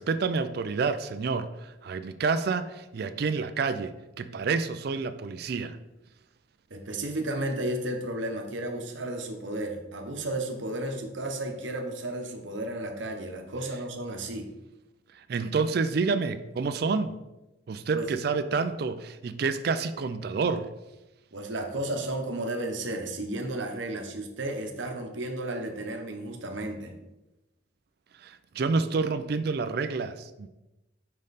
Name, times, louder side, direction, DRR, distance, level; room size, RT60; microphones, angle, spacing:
voice 1, 0.0-5.8 15.3-17.2 17.7-20.7 28.2-30.5, right 4 dB, 55° right, 11 dB, 0.4 m, -28 dB
voice 2, 6.7-14.5 17.9-18.1 21.3-26.9, right 1 dB, 70° right, 4 dB, 0.9 m, -33 dB
5.3 x 5.2 x 4.1 m, 0.98 s
head